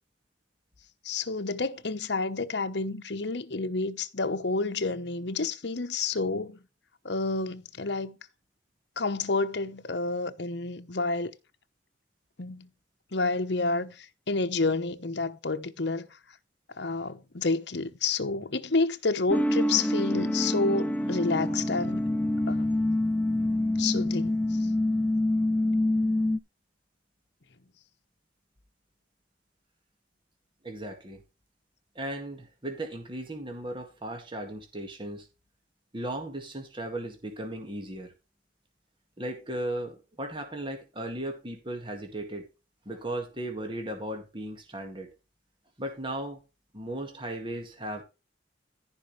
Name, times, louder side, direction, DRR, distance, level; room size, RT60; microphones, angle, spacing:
voice 1, 1.0-6.6 7.0-8.2 9.0-11.3 12.4-12.7 13.1-16.2 16.8-22.1 22.5-22.7 23.8-24.7, left 3 dB, 60° left, 1.0 m, -29 dB
sound 1, 19.3-26.4, left 1 dB, 10° left, 0.6 m, -26 dB
voice 2, 30.6-31.2 32.0-35.3 35.9-38.1 39.2-42.4 42.9-45.1 45.8-46.4 46.7-48.0, right 1 dB, 25° right, 1.9 m, -36 dB
14.5 x 5.4 x 3.2 m
head